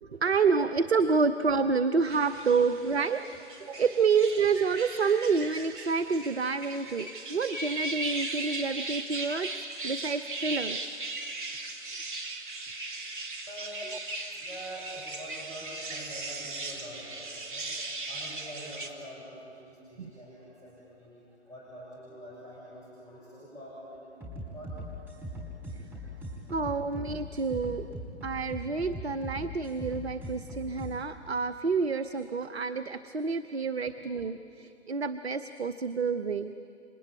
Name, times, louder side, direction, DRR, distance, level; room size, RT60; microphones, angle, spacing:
voice 1, 0.0-11.0 20.0-20.1 26.5-27.9 28.2-36.5, right 5 dB, 65° right, 12 dB, 0.9 m, -28 dB
sound 1, 2.1-18.9, right 2 dB, 45° right, 2.6 m, -38 dB
voice 2, 13.5-13.8 14.4-24.8 26.0-26.5 33.9-34.1, right 1 dB, 10° left, -8 dB, 6.6 m, -46 dB
sound 2, 24.2-31.0, equal, 5° right, 4.3 m, -40 dB
28.5 x 24.5 x 8.6 m, 2.7 s
figure-of-eight pair, 130°, 34 cm